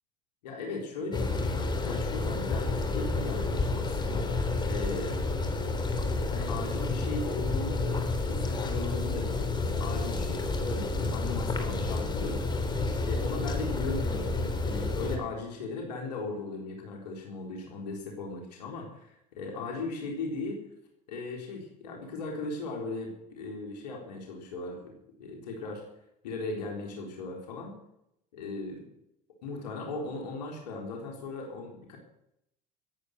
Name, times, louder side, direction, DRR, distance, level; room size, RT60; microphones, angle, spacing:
voice 1, 0.4-4.3 4.6-5.1 6.3-12.6 13.1-20.6 21.1-25.8 26.2-27.7 28.3-28.8 29.4-32.0, left 3 dB, 85° left, 0 dB, 4.0 m, -38 dB
sound 1, 1.1-15.2, left 3 dB, 20° left, 3.6 m, -30 dB
19.5 x 8.6 x 6.6 m, 0.79 s
supercardioid pair, 90°, 20 cm